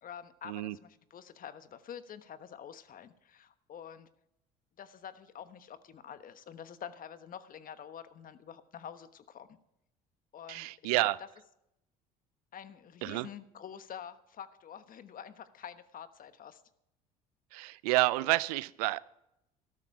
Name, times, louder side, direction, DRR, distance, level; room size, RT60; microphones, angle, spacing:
voice 1, 0.0-4.1 4.8-9.6 10.3-10.9 12.5-16.6, left 8 dB, 45° left, 12 dB, 1.2 m, -47 dB
voice 2, 10.5-11.2 13.0-13.3 17.5-19.0, right 19 dB, 85° right, 20 dB, 0.5 m, -29 dB
13.0 x 12.5 x 4.9 m, 0.83 s
hypercardioid pair, 75°, 19 cm